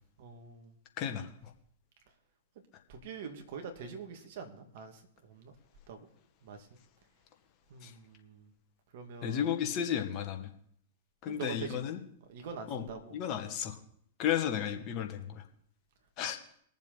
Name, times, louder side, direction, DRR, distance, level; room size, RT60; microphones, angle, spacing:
voice 1, 0.2-0.7 2.9-4.9 5.3-5.5 5.9-6.0 6.4-6.6 7.7-8.4 8.9-9.5 11.3-11.8 12.3-13.2, right 6 dB, 60° right, 5 dB, 2.3 m, -44 dB
voice 2, 1.0-1.3 7.8-7.9 9.2-10.5 11.2-12.0 12.7-13.8 14.2-15.3 16.2-16.4, left 9 dB, 40° left, 5 dB, 1.7 m, -33 dB
21.5 x 7.3 x 4.0 m, 0.65 s
hypercardioid pair, 105°, 0 cm